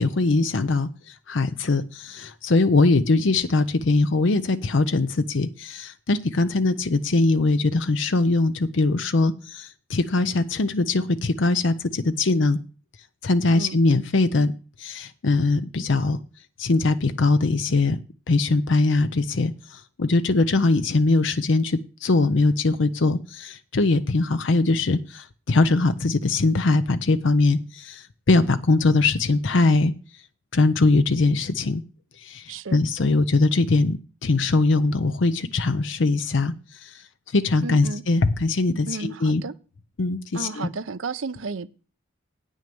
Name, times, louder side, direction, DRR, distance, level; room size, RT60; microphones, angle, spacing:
voice 1, 0.0-12.6 13.2-14.5 14.8-16.2 16.6-18.0 18.3-29.9 30.5-31.8 32.2-36.5 36.8-37.0 37.3-39.4 40.0-40.7, left 3 dB, 65° left, 0.6 m, -21 dB
voice 2, 37.6-38.0 38.9-39.5 40.3-41.7, right 4 dB, 75° right, 0.6 m, -32 dB
9.0 x 6.3 x 6.9 m
head